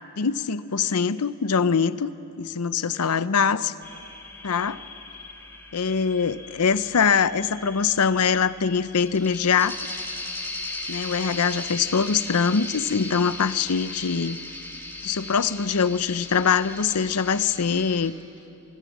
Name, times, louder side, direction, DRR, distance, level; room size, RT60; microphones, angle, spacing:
voice 1, 0.2-2.1 2.4-3.7 4.4-4.8 5.7-9.8 10.9-14.4 15.0-18.1, left 6 dB, 85° left, 15 dB, 0.7 m, -23 dB
sound 1, 3.8-18.1, left 2 dB, 10° left, 2.4 m, -38 dB
25.0 x 24.5 x 7.3 m, 3.0 s
head